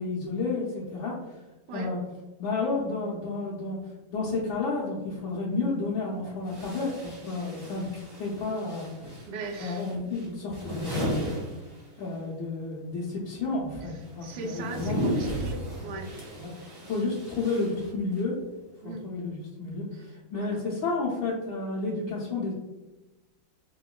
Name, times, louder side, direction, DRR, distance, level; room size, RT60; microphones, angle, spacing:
voice 1, 0.0-1.4 1.7-2.0 2.4-9.1 9.6-11.2 12.0-15.0 16.3-16.5 16.8-18.4 18.8-22.5, left 3 dB, 75° left, -6 dB, 1.5 m, -31 dB
sound 1, 5.5-5.6 6.4-12.2 12.5-18.4, equal, 15° right, 1.0 m, -36 dB
voice 2, 9.3-9.8 14.2-16.1 18.8-19.0 20.3-20.6, right 3 dB, 70° right, -1 dB, 1.2 m, -38 dB
3.5 x 2.9 x 2.3 m, 1.1 s
omnidirectional pair, 2.2 m